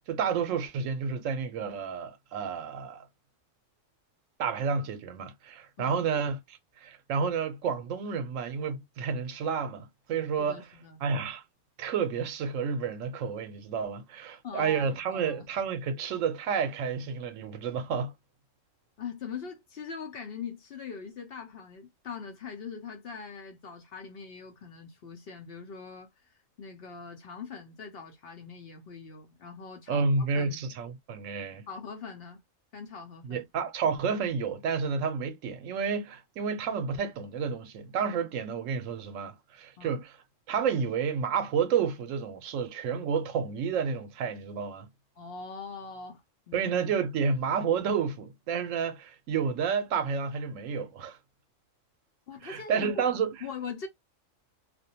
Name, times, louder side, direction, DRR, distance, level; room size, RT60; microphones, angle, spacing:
voice 1, 0.1-3.1 4.4-10.6 11.0-11.4 11.8-18.1 29.9-31.6 33.2-40.1 40.5-44.9 46.5-51.2 52.4-53.3, right 6 dB, 80° right, 1.0 m, -30 dB
voice 2, 10.4-11.0 14.4-15.5 19.0-26.1 26.6-30.7 31.7-32.4 32.7-33.4 39.8-40.0 45.2-46.7 52.3-53.1 53.4-53.9, left 6 dB, 55° left, 0.8 m, -42 dB
2.5 x 2.1 x 2.7 m
omnidirectional pair, 1.3 m